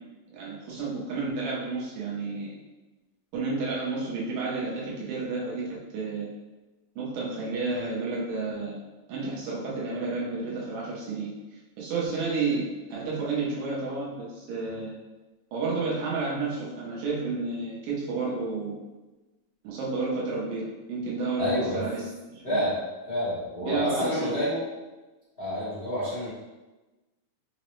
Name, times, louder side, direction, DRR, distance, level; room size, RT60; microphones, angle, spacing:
voice 1, 0.3-2.6 3.3-6.3 7.0-8.8 9.1-11.3 11.8-14.9 15.5-18.8 19.6-22.6 23.6-24.4, right 3 dB, 90° right, -5 dB, 2.3 m, -31 dB
voice 2, 21.4-21.8 22.4-22.7 23.1-24.6 25.4-26.3, equal, 55° left, -12 dB, 0.6 m, -28 dB
5.5 x 2.0 x 3.0 m, 1.1 s
omnidirectional pair, 3.5 m